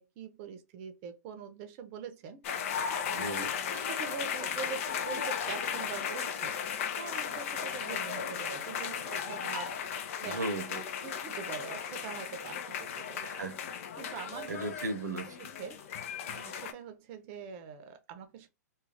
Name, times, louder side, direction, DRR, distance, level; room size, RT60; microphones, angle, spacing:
voice 1, 0.0-2.6 3.1-6.6 7.0-10.4 11.0-13.3 14.0-14.7 15.6-15.8 16.3-18.5, right 6 dB, 40° right, 0.7 m, -44 dB
sound 1, 2.4-16.7, left 7 dB, 50° left, 0.5 m, -36 dB
voice 2, 3.2-3.5 10.2-10.8 13.2-13.6 14.5-15.4, right 2 dB, 80° right, 0.7 m, -36 dB
2.4 x 2.3 x 3.2 m
hypercardioid pair, 120°, 9 cm